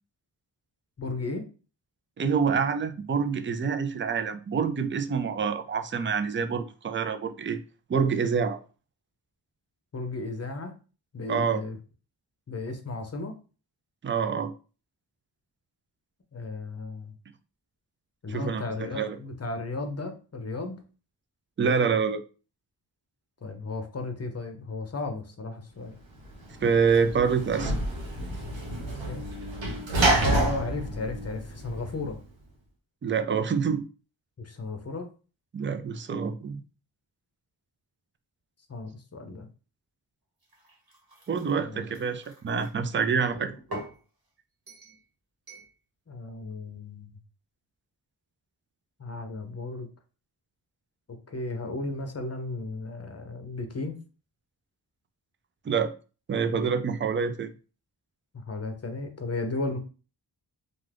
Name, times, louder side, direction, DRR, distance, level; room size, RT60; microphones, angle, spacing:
voice 1, 1.0-1.5 9.9-10.7 11.1-11.8 12.5-13.3 16.3-17.1 18.2-20.8 23.4-25.9 28.8-29.3 30.2-32.2 34.4-35.1 38.7-39.5 41.6-41.9 46.1-47.1 49.0-49.9 51.3-54.0 58.3-59.8, left 3 dB, 35° left, 0.7 m, -34 dB
voice 2, 2.2-7.6 7.9-8.6 11.3-11.6 14.0-14.5 18.3-19.2 21.6-22.2 26.6-27.7 33.0-33.8 35.5-36.6 41.3-43.5 55.7-55.9 56.3-57.5, right 6 dB, 30° right, 0.4 m, -26 dB
Sliding door / Slam, 26.3-32.1, right 2 dB, 90° right, 0.8 m, -28 dB
sound 1, 40.4-42.7 43.3-44.0 44.7-45.0 45.5-45.7, right 1 dB, 50° right, 1.2 m, -44 dB
2.5 x 2.4 x 3.3 m
cardioid pair, 50°, 45 cm